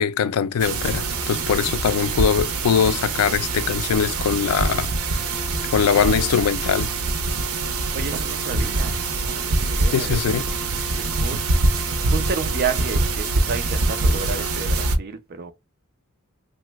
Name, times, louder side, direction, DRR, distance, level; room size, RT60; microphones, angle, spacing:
voice 1, 0.0-5.3 5.7-6.9 9.9-10.4, left 7 dB, 85° left, 0.3 m, -22 dB
sound 1, 0.6-15.0, right 3 dB, 90° right, 0.6 m, -24 dB
voice 2, 7.9-10.5 11.0-15.5, right 5 dB, 45° right, 0.4 m, -31 dB
2.9 x 2.0 x 3.3 m
head